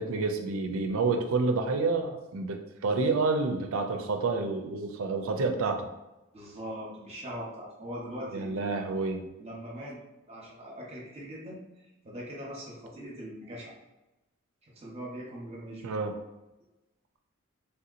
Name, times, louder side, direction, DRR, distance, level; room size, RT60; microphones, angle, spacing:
voice 1, 0.0-5.8 8.3-9.3 15.8-16.1, right 3 dB, 70° right, 5 dB, 0.4 m, -29 dB
voice 2, 6.3-9.0 9.4-10.0 10.3-11.6 12.0-13.7 14.6-15.9, equal, 30° right, -4 dB, 0.8 m, -41 dB
3.3 x 2.8 x 2.5 m, 1.0 s
head